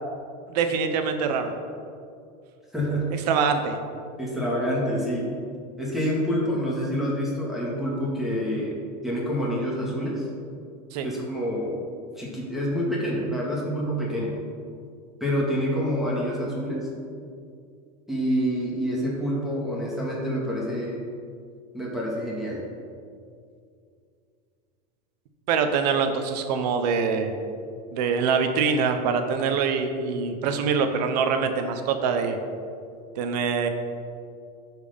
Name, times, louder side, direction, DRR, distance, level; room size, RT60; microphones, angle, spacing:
voice 1, 0.5-1.5 3.3-3.8 10.9-11.1 25.5-27.3 27.9-32.4 33.1-33.7, right 5 dB, 75° right, 7 dB, 1.1 m, -24 dB
voice 2, 2.7-3.1 4.2-5.4 5.8-10.3 11.0-11.8 12.2-14.4 15.2-16.9 18.1-21.0 21.7-22.6, equal, ahead, -5 dB, 2.1 m, -27 dB
12.0 x 4.7 x 5.3 m, 2.4 s
supercardioid pair, 130°, 21 cm